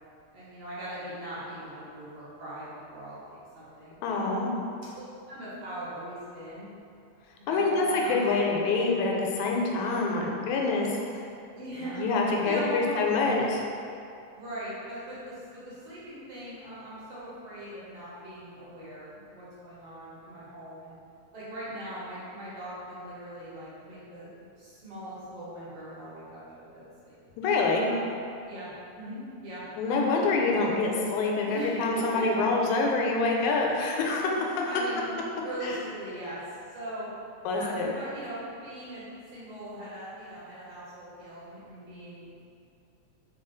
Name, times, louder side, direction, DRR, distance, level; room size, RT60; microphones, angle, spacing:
voice 1, 0.3-3.2 3.5-4.4 4.8-5.0 5.3-6.7 7.4-8.2 11.5-12.0 12.4-13.0 14.3-21.0 21.3-27.2 27.8-30.5 31.5-32.1 33.6-33.7 34.3-35.1 35.3-36.4 36.7-37.1 37.5-42.3, right 1 dB, 65° right, -10 dB, 1.8 m, -40 dB
voice 2, 4.0-4.5 7.5-11.2 12.0-13.6 27.4-27.9 29.8-34.6 35.6-35.8 37.5-37.9, left 3 dB, 85° left, -1 dB, 2.0 m, -26 dB
4.6 x 2.4 x 3.8 m, 2.6 s
omnidirectional pair, 3.4 m